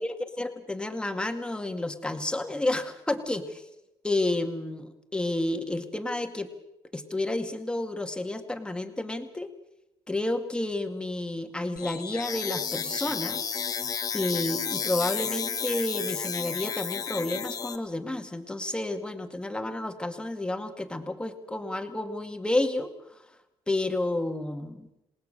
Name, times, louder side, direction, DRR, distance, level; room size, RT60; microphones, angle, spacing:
voice 1, 0.4-3.6 4.0-6.5 6.9-9.5 10.1-13.5 14.1-22.9 23.7-24.9, left 2 dB, 10° left, 6 dB, 2.2 m, -30 dB
sound 1, 11.8-17.8, left 6 dB, 40° left, 2.0 m, -32 dB
27.0 x 19.0 x 6.8 m, 0.91 s
cardioid pair, 95°, 9 cm